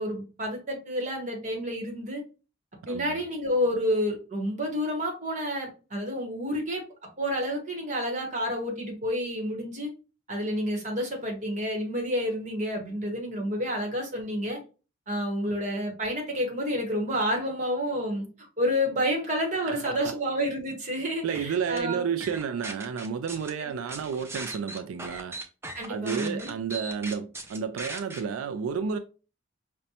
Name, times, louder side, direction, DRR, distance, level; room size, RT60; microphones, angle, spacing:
voice 1, 0.0-2.2 2.9-6.8 7.2-9.9 10.3-14.6 15.1-18.3 18.6-22.0 23.6-23.8 25.7-26.5, equal, 35° right, 1.0 m, -29 dB
voice 2, 2.8-3.2 19.6-20.2 21.2-25.4 25.9-29.0, right 6 dB, 85° right, 0.3 m, -31 dB
sound 1, 21.3-21.8 22.2-23.5 23.9-28.2, right 2 dB, 10° right, 0.3 m, -38 dB
5.1 x 2.2 x 2.8 m
head